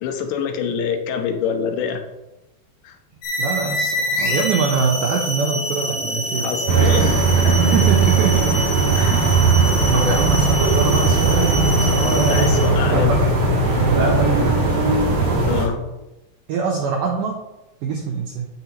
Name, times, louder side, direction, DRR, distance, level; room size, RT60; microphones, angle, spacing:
voice 1, 0.0-2.0 2.8-3.0 6.4-7.6 9.0-9.3 12.0-13.1 15.5-15.8, left 7 dB, 90° left, 4 dB, 3.4 m, -25 dB
sound 1, 3.2-12.8, left 1 dB, 55° left, 4.5 m, -27 dB
voice 2, 3.4-6.5 7.6-8.7 9.1-9.4 9.9-13.2 13.8-14.8 16.5-17.3 17.8-18.5, right 5 dB, 85° right, 0 dB, 1.9 m, -23 dB
sound 2, 4.9-12.9, right 2 dB, 30° right, 3.8 m, -36 dB
sound 3, 6.7-15.7, right 3 dB, 50° right, 3.9 m, -18 dB
9.6 x 9.3 x 3.1 m, 0.96 s
omnidirectional pair, 5.0 m